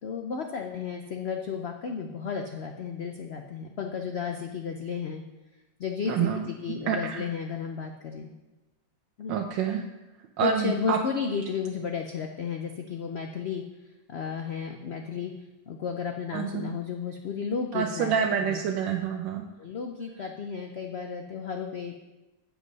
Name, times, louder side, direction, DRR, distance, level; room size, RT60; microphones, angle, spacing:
voice 1, 0.0-5.2 5.8-8.3 9.2-9.4 10.4-13.6 14.1-15.3 15.7-18.1 18.4-18.6 19.6-22.0, left 6 dB, 75° left, 4 dB, 0.5 m, -33 dB
voice 2, 6.1-6.4 6.9-7.2 9.3-9.8 10.4-11.0 16.3-16.7 17.7-19.5, right 7 dB, 85° right, 3 dB, 1.4 m, -27 dB
8.1 x 7.6 x 5.3 m, 1.1 s
omnidirectional pair, 1.9 m